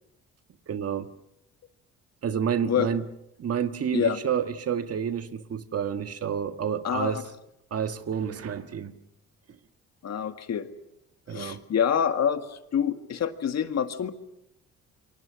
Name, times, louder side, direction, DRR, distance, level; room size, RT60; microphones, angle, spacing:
voice 1, 0.7-1.1 2.2-3.0 3.4-7.2 7.7-8.9 11.3-11.6, right 8 dB, 50° right, 9 dB, 1.7 m, -29 dB
voice 2, 6.8-7.2 10.0-10.7 11.3-14.1, left 8 dB, 60° left, 8 dB, 1.9 m, -26 dB
28.0 x 23.5 x 6.4 m, 0.82 s
cardioid pair, 90°, 30 cm